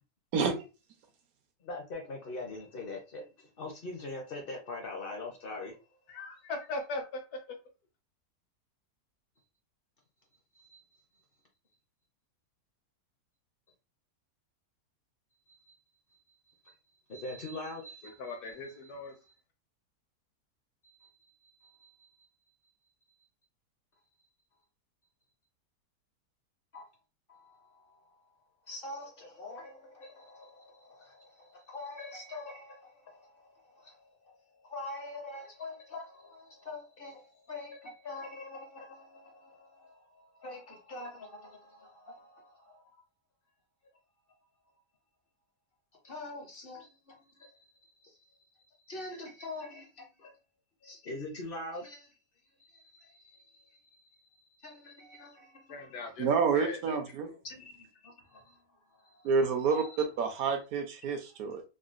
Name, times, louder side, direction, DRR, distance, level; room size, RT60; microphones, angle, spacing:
voice 1, 0.3-0.6 56.2-57.3 59.2-59.8 60.2-61.6, right 5 dB, 70° right, 1.0 m, -28 dB
voice 2, 1.6-5.8 10.5-10.8 15.5-15.8 16.6-16.8 17.1-18.9 19.2-19.3 20.8-22.3 26.7-26.9 27.3-28.1 28.7-42.9 46.0-48.4 48.7-50.4 50.8-52.1 52.6-56.0 57.4-59.3 59.7-60.0, left 2 dB, 55° left, 0.6 m, -45 dB
voice 3, 6.1-7.2 18.2-19.1 55.7-56.3 56.5-57.0 57.2-57.3, left 2 dB, 75° left, 1.3 m, -39 dB
3.7 x 2.2 x 2.4 m
omnidirectional pair, 1.7 m